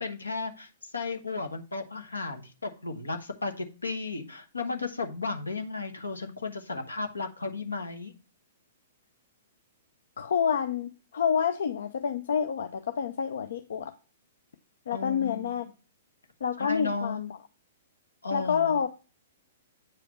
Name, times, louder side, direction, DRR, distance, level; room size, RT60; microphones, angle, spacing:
voice 1, 0.0-8.1 14.9-15.7 16.6-17.2 18.2-18.7, left 3 dB, 80° left, 1.1 m, -34 dB
voice 2, 10.2-13.9 14.9-15.7 16.4-17.4 18.3-18.9, left 7 dB, 60° left, 0.5 m, -28 dB
8.5 x 4.9 x 3.0 m
figure-of-eight pair, 110°, 0 cm